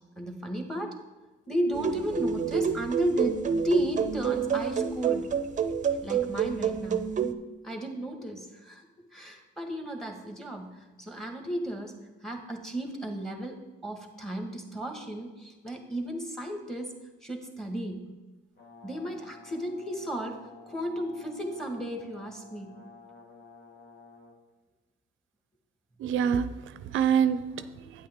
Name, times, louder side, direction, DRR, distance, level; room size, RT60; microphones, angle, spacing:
voice 1, 0.2-0.9 1.5-5.3 6.0-7.1 7.6-8.8 9.1-11.9 12.2-13.6 13.8-16.9 17.2-18.0 18.8-20.4 20.7-22.8, equal, ahead, 4 dB, 1.6 m, -33 dB
sound 1, 1.7-7.3, right 7 dB, 40° right, 0.6 m, -28 dB
Brass instrument, 18.6-24.4, left 4 dB, 60° left, 1.9 m, -52 dB
voice 2, 26.0-28.1, right 8 dB, 80° right, 13 dB, 0.5 m, -27 dB
9.1 x 8.6 x 3.7 m, 1.2 s
cardioid pair, 90°, 20 cm